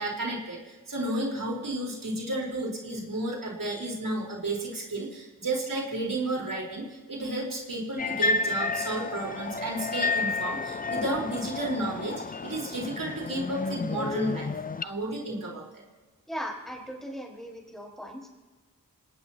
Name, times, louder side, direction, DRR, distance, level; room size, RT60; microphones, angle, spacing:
voice 1, 0.0-14.5 14.8-15.7, right 1 dB, 75° right, -2 dB, 4.2 m, -32 dB
sound 1, 8.0-14.8, left 3 dB, 25° left, 0.4 m, -31 dB
voice 2, 16.3-18.3, equal, ahead, -2 dB, 5.1 m, -38 dB
27.5 x 18.0 x 2.9 m, 1.3 s
wide cardioid pair, 80°, 33 cm